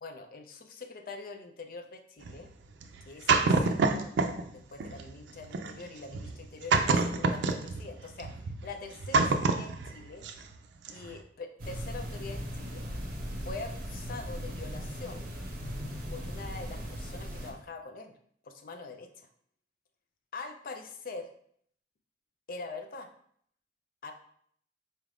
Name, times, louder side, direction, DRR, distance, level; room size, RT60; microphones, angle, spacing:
voice 1, 0.0-2.5 3.1-10.2 10.9-12.8 13.4-15.3 16.1-18.1 18.4-19.3 20.3-21.3 22.5-23.1 24.0-24.1, left 3 dB, 55° left, 6 dB, 0.4 m, -44 dB
sound 1, 2.2-4.5 4.8-10.6 10.8-11.2, right 4 dB, 85° right, 0.4 m, -28 dB
sound 2, 11.6-17.5, equal, 55° right, 0.7 m, -38 dB
4.1 x 2.4 x 3.3 m, 0.63 s
head